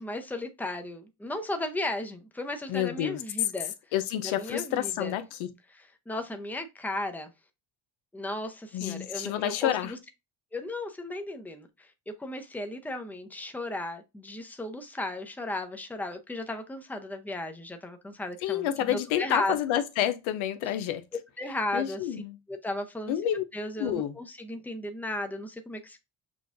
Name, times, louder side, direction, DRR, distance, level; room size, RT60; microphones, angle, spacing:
voice 1, 0.0-3.7 4.2-5.2 5.7-7.3 8.1-10.0 10.5-19.6 21.4-22.2 22.5-23.1 23.5-26.0, left 1 dB, 5° left, 0.6 m, -35 dB
voice 2, 2.7-3.2 3.9-5.5 8.7-9.9 18.4-21.0 21.7-22.4 23.1-23.4 23.8-24.2, left 11 dB, 90° left, 0.6 m, -29 dB
6.2 x 2.3 x 2.5 m
cardioid pair, 80°, 47 cm